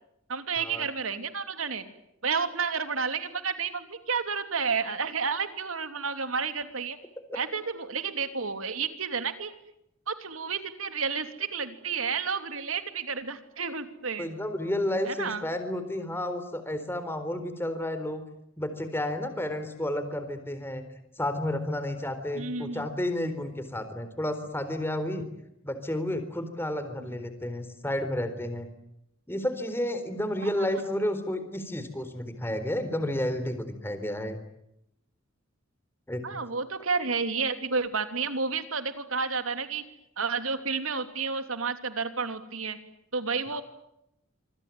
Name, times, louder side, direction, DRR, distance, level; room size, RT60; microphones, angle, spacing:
voice 1, 0.3-1.9 2.2-7.0 7.3-9.5 10.1-14.3 15.1-15.4 22.3-22.8 27.0-27.1 30.4-30.5 36.2-39.8 40.2-42.8 43.1-43.6, right 5 dB, 85° right, 9 dB, 3.1 m, -31 dB
voice 2, 14.2-18.2 18.6-20.8 21.2-25.2 25.6-28.7 29.3-34.4 36.1-36.2, left 1 dB, 10° left, 9 dB, 4.0 m, -31 dB
26.5 x 24.5 x 9.2 m, 0.81 s
head